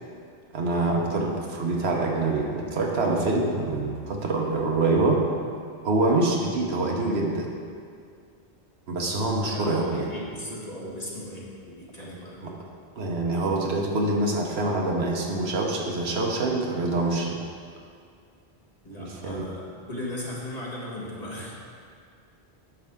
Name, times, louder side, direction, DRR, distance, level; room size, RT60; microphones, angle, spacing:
voice 1, 0.5-5.3 5.8-7.5 8.9-10.1 12.4-12.5 13.0-17.4 19.0-19.5, right 2 dB, 85° right, 0 dB, 1.3 m, -25 dB
voice 2, 9.5-12.4 18.8-21.5, left 1 dB, 40° left, -5 dB, 1.7 m, -37 dB
9.7 x 6.8 x 3.7 m, 2.2 s
omnidirectional pair, 1.0 m